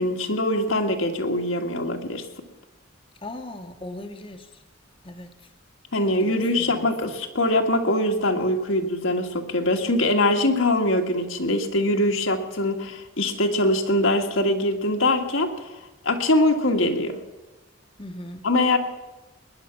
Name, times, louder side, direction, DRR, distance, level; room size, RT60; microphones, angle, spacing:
voice 1, 0.0-2.2 5.9-15.5 16.0-17.2 18.4-18.8, left 1 dB, 80° left, 3 dB, 1.9 m, -23 dB
voice 2, 3.2-4.5 5.0-5.3 6.2-6.9 18.0-18.4, left 1 dB, 25° left, 5 dB, 1.0 m, -38 dB
20.5 x 10.0 x 6.0 m, 1.1 s
head